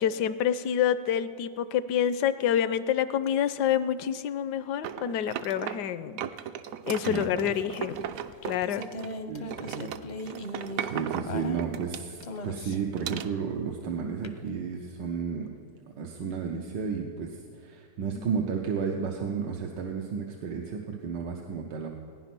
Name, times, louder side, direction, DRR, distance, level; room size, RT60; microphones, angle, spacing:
voice 1, 0.0-6.2 6.9-8.0 8.4-8.9 18.2-18.3, left 9 dB, 75° left, 14 dB, 1.2 m, -27 dB
sound 1, 4.8-5.9 6.2-9.2 9.5-12.4 13.0-13.3, right 9 dB, 70° right, 0.9 m, -36 dB
voice 2, 7.0-7.6 9.3-9.9 10.2-15.5 15.9-21.9, right 6 dB, 90° right, 2 dB, 1.6 m, -33 dB
sound 2, 7.9-11.9 12.2-13.0 14.2-14.3, left 1 dB, 45° left, 0.6 m, -38 dB
18.5 x 10.0 x 6.0 m, 2.2 s
omnidirectional pair, 1.9 m